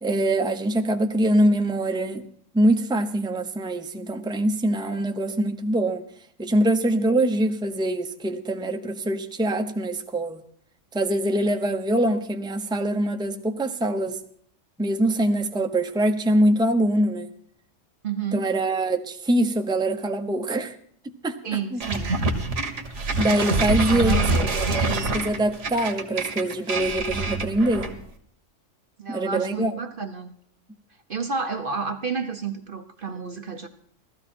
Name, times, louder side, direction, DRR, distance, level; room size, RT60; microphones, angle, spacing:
voice 1, 0.0-2.2 2.5-6.0 6.4-10.4 10.9-14.2 14.8-17.3 18.3-20.8 21.2-21.4 21.7-21.8 23.2-27.9 29.1-29.7, right 1 dB, 5° right, 0.8 m, -23 dB
voice 2, 18.0-18.5 21.4-22.2 23.9-24.5 29.0-30.4 31.1-33.7, right 5 dB, 45° right, 0.9 m, -30 dB
sound 1, 21.8-28.1, right 3 dB, 65° right, 1.8 m, -25 dB
16.5 x 13.5 x 4.4 m
omnidirectional pair, 1.3 m